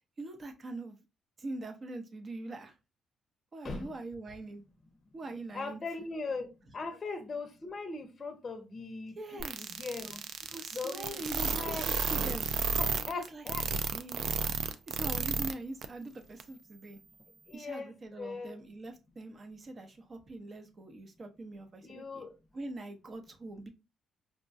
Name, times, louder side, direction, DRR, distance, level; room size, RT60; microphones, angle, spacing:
voice 1, 0.2-1.0 1.4-2.8 3.5-4.6 5.1-5.8 9.2-9.7 10.4-12.5 13.1-17.0 17.5-22.2 22.5-23.7, right 2 dB, 40° right, 0.7 m, -43 dB
voice 2, 5.5-6.5 6.7-10.2 10.7-11.8 12.8-13.6 17.5-18.6 21.8-22.3, left 4 dB, 35° left, 0.6 m, -40 dB
sound 1, 9.4-15.5 15.8-15.9 16.4-16.5, right 5 dB, 65° right, 0.4 m, -32 dB
4.7 x 2.2 x 2.5 m
cardioid pair, 90°, 0 cm